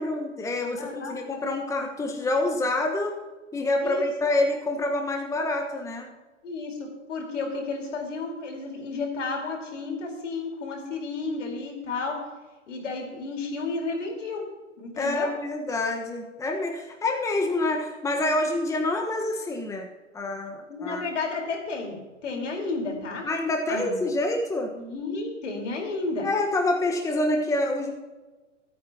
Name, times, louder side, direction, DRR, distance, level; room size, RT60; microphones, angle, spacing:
voice 1, 0.0-3.1 3.5-6.1 15.0-19.9 20.1-21.0 23.2-24.7 26.2-27.9, left 2 dB, 10° left, 2 dB, 1.3 m, -27 dB
voice 2, 0.8-1.2 3.8-4.3 6.4-12.2 12.7-14.5 14.8-15.3 20.7-23.3 23.7-24.0 24.7-26.3, left 3 dB, 70° left, 1 dB, 4.4 m, -32 dB
24.0 x 9.2 x 2.9 m, 1.2 s
hypercardioid pair, 115°, 37 cm